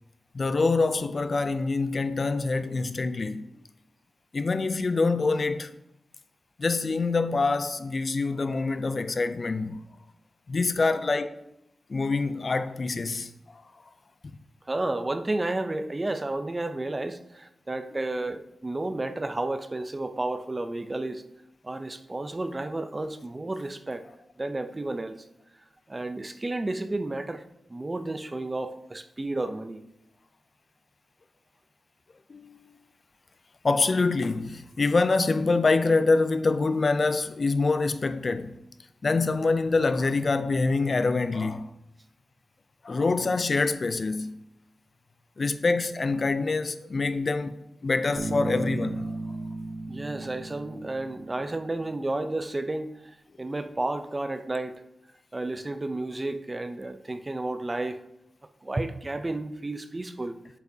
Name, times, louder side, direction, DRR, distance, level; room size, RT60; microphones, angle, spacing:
voice 1, 0.3-3.5 4.3-5.7 6.6-9.8 10.5-11.4 11.9-13.6 32.3-32.6 33.6-38.6 39.0-41.7 42.8-44.4 45.4-49.2, left 3 dB, 45° left, 0.4 m, -25 dB
voice 2, 14.7-21.2 21.6-24.0 24.4-25.2 25.9-27.4 27.7-29.8 49.9-53.0 53.4-54.8 55.3-58.0 58.6-60.4, right 2 dB, 25° right, 0.6 m, -32 dB
Bass guitar, 48.2-51.9, right 2 dB, 60° right, 1.4 m, -35 dB
8.8 x 8.2 x 2.8 m
wide cardioid pair, 85°, 0 cm